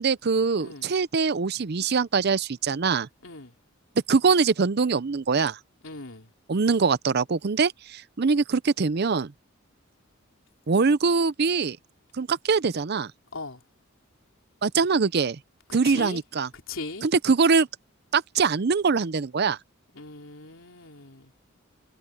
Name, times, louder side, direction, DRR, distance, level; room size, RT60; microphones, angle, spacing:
voice 1, 0.0-3.1 4.1-5.6 6.5-9.3 10.7-11.8 12.2-13.1 14.6-15.4 15.7-16.5 17.0-17.7 18.1-19.6, right 5 dB, 50° right, 0.6 m, -23 dB
voice 2, 3.2-3.5 5.8-6.3 13.3-13.6 15.8-16.2 16.7-17.1 19.9-21.3, left 3 dB, 75° left, 3.3 m, -39 dB
head